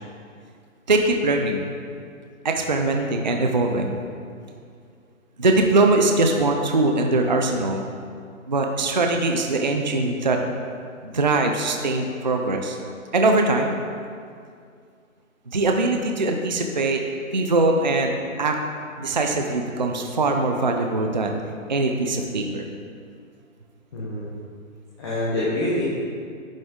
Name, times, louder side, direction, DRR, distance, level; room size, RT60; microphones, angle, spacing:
voice 1, 0.9-1.7 2.4-4.0 5.4-7.9 8.5-10.4 11.0-12.8 13.1-13.7 15.5-17.0 17.3-18.6 19.0-21.4 21.7-22.6, right 2 dB, 35° right, 3 dB, 0.4 m, -22 dB
voice 2, 23.9-24.3 25.0-25.8, left 1 dB, 20° left, -9 dB, 1.0 m, -25 dB
10.5 x 6.3 x 3.6 m, 2.2 s
hypercardioid pair, 170°, 41 cm